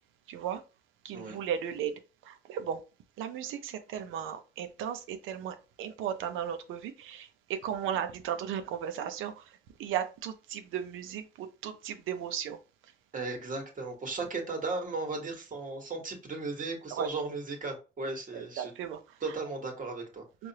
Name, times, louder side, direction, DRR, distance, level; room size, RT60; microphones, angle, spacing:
voice 1, 0.3-0.6 1.0-2.8 3.2-12.6 16.9-17.1 18.3-19.4 20.4-20.5, right 9 dB, 90° right, 0.6 m, -36 dB
voice 2, 13.1-18.7 19.2-20.2, right 3 dB, 40° right, 1.4 m, -36 dB
4.8 x 2.5 x 2.9 m
cardioid pair, 90°, 20 cm